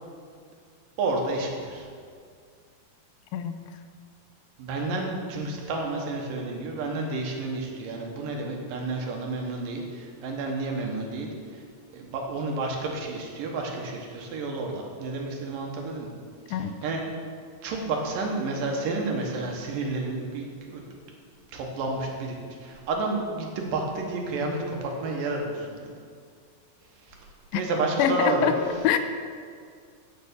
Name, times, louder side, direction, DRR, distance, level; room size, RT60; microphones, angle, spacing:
voice 1, 1.0-1.9 4.6-11.6 11.9-16.1 16.5-17.0 17.6-20.8 21.5-25.9 27.0-27.2 27.5-28.6, right 3 dB, 70° right, 0 dB, 2.7 m, -30 dB
voice 2, 28.0-28.6 28.8-29.0, left 10 dB, 85° left, 9 dB, 2.3 m, -24 dB
9.2 x 6.7 x 6.8 m, 2.1 s
omnidirectional pair, 4.2 m